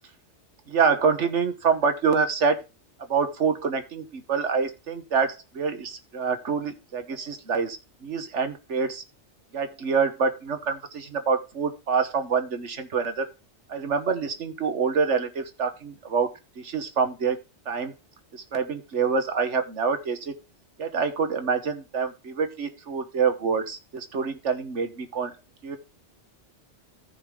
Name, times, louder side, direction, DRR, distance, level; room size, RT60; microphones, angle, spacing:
voice 1, 0.7-2.6 3.1-7.8 8.0-9.0 9.5-13.3 13.7-17.4 17.7-17.9 18.3-20.3 20.8-25.3 25.6-25.8, right 5 dB, 80° right, 8 dB, 1.6 m, -26 dB
14.5 x 5.0 x 3.7 m, 0.28 s
omnidirectional pair, 1.2 m